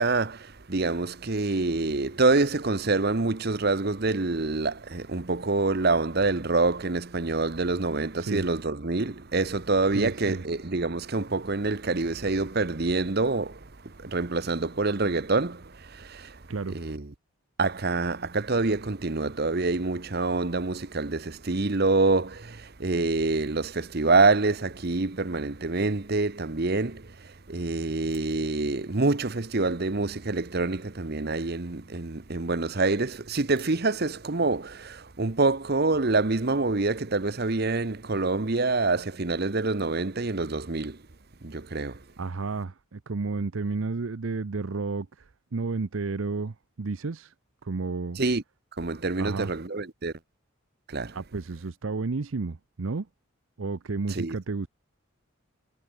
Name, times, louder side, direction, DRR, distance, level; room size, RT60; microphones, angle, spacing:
voice 1, 0.0-17.1 17.6-41.0 41.4-42.0 48.2-48.4 48.8-50.1 50.9-51.2 54.1-54.4, right 3 dB, 50° right, 1.0 m, -26 dB
voice 2, 9.9-10.4 16.5-16.8 42.2-47.3 47.6-48.2 49.2-49.5 51.1-53.1 53.6-54.7, right 4 dB, 70° right, 0.7 m, -32 dB
sound 1, 24.8-29.0 29.5-29.7 30.3-30.6 30.9-32.1 32.4-32.5 32.7-32.8 33.1-43.1, right 8 dB, 25° right, 6.4 m, -65 dB
head